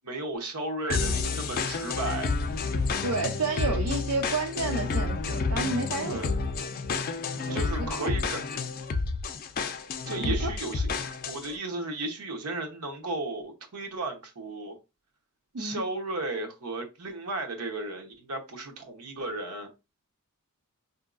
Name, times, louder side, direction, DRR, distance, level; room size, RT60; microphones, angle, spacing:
voice 1, 0.0-2.3 6.1-6.4 7.5-8.4 10.0-10.9 11.3-14.8 15.6-19.7, right 2 dB, 90° right, 1.0 m, -34 dB
sound 1, 0.9-11.5, left 4 dB, 40° left, 0.4 m, -30 dB
voice 2, 3.0-6.2 7.5-8.1 10.1-10.5 15.5-15.8, right 3 dB, 75° right, 0.5 m, -31 dB
4.6 x 2.8 x 2.5 m
head